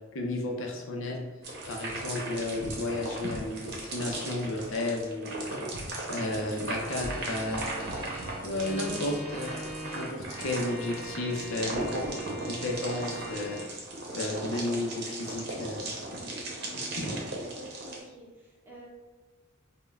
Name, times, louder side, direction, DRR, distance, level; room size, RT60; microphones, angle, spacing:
voice 1, 0.1-1.2 1.7-5.8 6.1-7.6 8.2-9.5 10.0-12.1 12.5-13.6 14.1-15.8 17.0-17.2, left 2 dB, 75° left, 1 dB, 0.6 m, -33 dB
sound 1, 1.4-18.0, right 2 dB, 55° right, 0.7 m, -37 dB
Organ, 6.8-13.7, right 1 dB, 25° right, 1.0 m, -41 dB
voice 2, 16.5-17.0 17.5-18.9, left 1 dB, 10° right, -5 dB, 0.7 m, -50 dB
5.1 x 2.1 x 2.3 m, 1.2 s
head